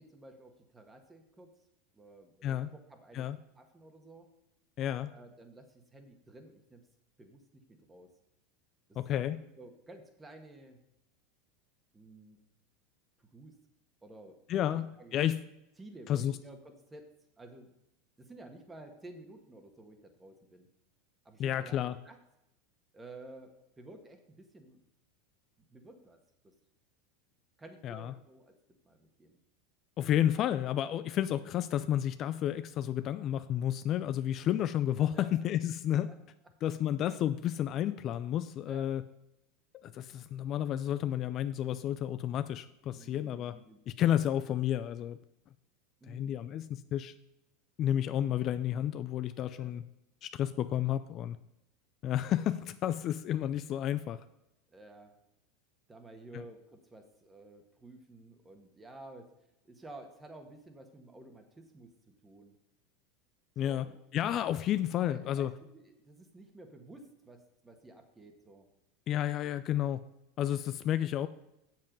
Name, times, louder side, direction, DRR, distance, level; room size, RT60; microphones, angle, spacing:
voice 1, 0.0-1.5 1.9-3.3 3.6-4.3 5.1-6.8 7.2-7.4 7.7-8.1 9.5-10.8 11.9-12.4 13.2-13.6 14.0-14.4 14.7-15.2 15.8-17.7 18.2-20.7 21.3-22.2 22.9-24.8 25.7-26.5 27.6-28.6 28.8-29.4 30.8-30.9 35.1-35.4 38.7-38.9 43.0-43.8 46.0-46.3 49.5-49.7 54.7-55.1 55.9-59.3 59.6-62.6 63.6-64.0 65.0-68.7, right 2 dB, 15° right, 6 dB, 1.6 m, -52 dB
voice 2, 4.8-5.1 9.0-9.4 14.5-15.4 16.1-16.4 21.4-22.0 27.8-28.1 30.0-36.1 36.6-39.0 39.8-43.6 43.9-45.2 46.1-47.1 47.8-49.8 50.2-51.4 52.0-54.2 56.3-56.4 63.6-63.9 64.1-65.5 69.1-70.0 70.4-71.3, left 11 dB, 45° left, 12 dB, 0.4 m, -31 dB
7.5 x 7.3 x 5.3 m, 0.87 s
hypercardioid pair, 100°, 0 cm